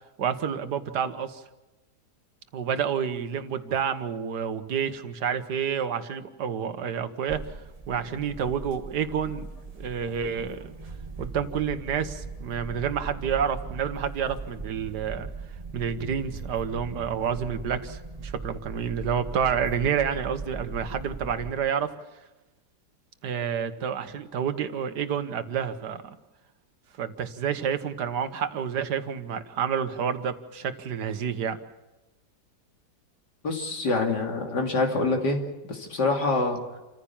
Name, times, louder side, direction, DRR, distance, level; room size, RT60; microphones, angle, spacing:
voice 1, 0.2-1.4 2.5-7.4 7.9-9.5 9.7-10.7 11.2-15.3 15.7-21.9 23.2-26.2 27.0-31.6, right 7 dB, 80° right, 10 dB, 1.7 m, -29 dB
sound 1, 7.3-21.5, right 4 dB, 25° right, 1.2 m, -39 dB
voice 2, 33.4-35.4 35.7-36.6, left 3 dB, 85° left, 2 dB, 3.4 m, -25 dB
28.5 x 15.0 x 7.2 m, 1.1 s
omnidirectional pair, 1.8 m